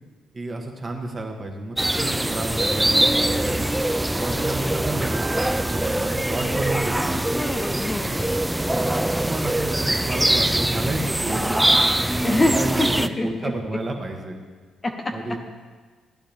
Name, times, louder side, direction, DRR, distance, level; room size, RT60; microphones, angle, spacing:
voice 1, 0.3-3.7 4.2-7.2 8.6-11.8 12.1-14.4 15.1-15.4, right 2 dB, 30° right, 2 dB, 1.6 m, -31 dB
sound 1, 1.8-13.1, right 1 dB, 10° right, 0.4 m, -23 dB
Piano, 5.1-7.2, right 5 dB, 90° left, 3.9 m, -41 dB
voice 2, 7.3-8.3 12.2-13.5 14.8-15.4, left 1 dB, 25° left, 3 dB, 1.0 m, -25 dB
14.0 x 10.0 x 3.6 m, 1.5 s
cardioid pair, 90°, 0 cm